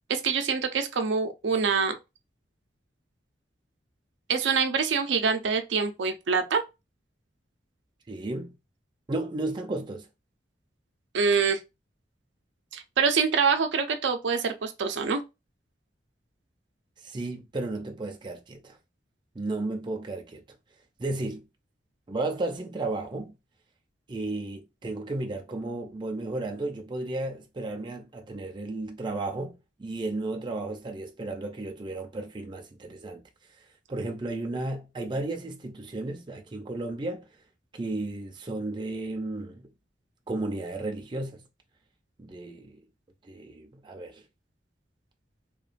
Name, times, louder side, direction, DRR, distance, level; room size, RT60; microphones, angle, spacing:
voice 1, 0.1-1.9 4.3-6.6 11.1-11.6 12.7-15.2, right 5 dB, 85° right, 0.5 m, -25 dB
voice 2, 8.1-8.5 9.1-10.1 17.0-18.8 19.4-20.4 21.0-21.4 22.1-23.3 24.1-33.2 33.9-37.3 37.7-39.7 40.3-41.4 42.2-42.8 43.2-44.2, right 2 dB, 25° right, 0.4 m, -33 dB
2.9 x 2.2 x 2.4 m
head